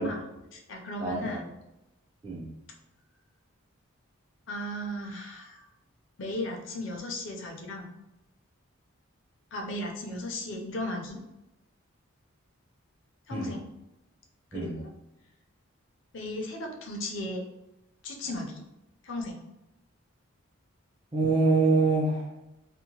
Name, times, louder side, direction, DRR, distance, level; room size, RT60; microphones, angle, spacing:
voice 1, 0.0-1.5 4.5-5.7 6.2-7.9 9.5-11.2 13.3-13.7 14.5-14.9 16.1-17.4 18.0-18.6 19.0-19.4, left 1 dB, 60° left, 1 dB, 0.5 m, -36 dB
voice 2, 1.0-1.4 2.2-2.5 13.3-13.5 14.5-14.8 21.1-22.3, right 3 dB, 20° right, -3 dB, 0.4 m, -25 dB
2.8 x 2.1 x 2.8 m, 0.91 s
head